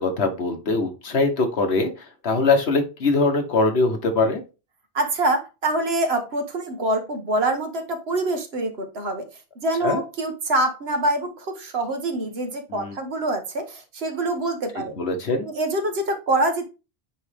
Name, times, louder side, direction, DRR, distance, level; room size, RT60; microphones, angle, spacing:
voice 1, 0.0-1.9 2.2-4.4 9.8-10.0 12.7-13.0 15.0-15.5, left 3 dB, 80° left, 5 dB, 1.5 m, -22 dB
voice 2, 4.9-9.3 9.6-15.0 15.4-16.6, right 2 dB, 75° right, 6 dB, 1.4 m, -25 dB
9.0 x 3.2 x 3.4 m, 0.30 s
omnidirectional pair, 1.1 m